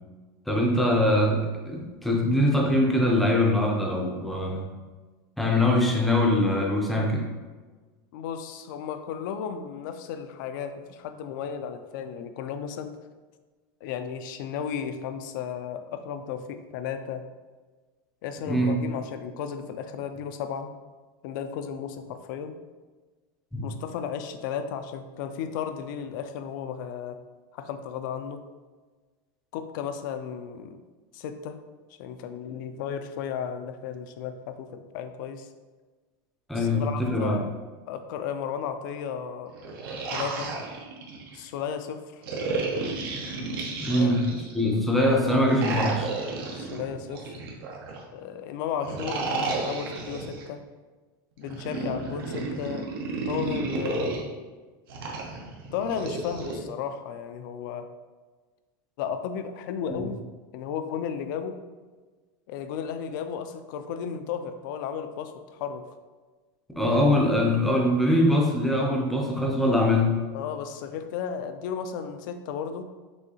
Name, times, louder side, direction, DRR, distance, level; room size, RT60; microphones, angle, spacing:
voice 1, 0.5-4.6 5.4-7.3 18.5-18.8 23.5-23.7 36.5-37.4 43.8-44.3 44.5-46.1 60.0-60.1 66.8-70.2, left 1 dB, ahead, -1 dB, 0.5 m, -23 dB
voice 2, 8.1-13.0 13.8-17.2 18.2-20.7 21.2-22.6 23.6-27.2 27.5-28.4 29.5-30.8 31.1-31.6 32.0-35.5 36.5-37.5 37.9-39.5 40.1-40.5 41.3-42.2 43.9-44.5 46.5-47.3 48.1-50.6 51.4-52.9 53.3-54.1 55.7-57.9 59.0-60.2 60.5-61.6 62.5-65.9 70.3-72.8, left 7 dB, 60° left, 9 dB, 0.4 m, -34 dB
sound 1, 39.5-41.4 42.2-44.6 45.5-48.0 48.8-50.4 51.4-54.2 54.9-56.6, right 3 dB, 80° right, 0.9 m, -32 dB
6.2 x 2.7 x 2.8 m, 1.3 s
supercardioid pair, 160°, 12 cm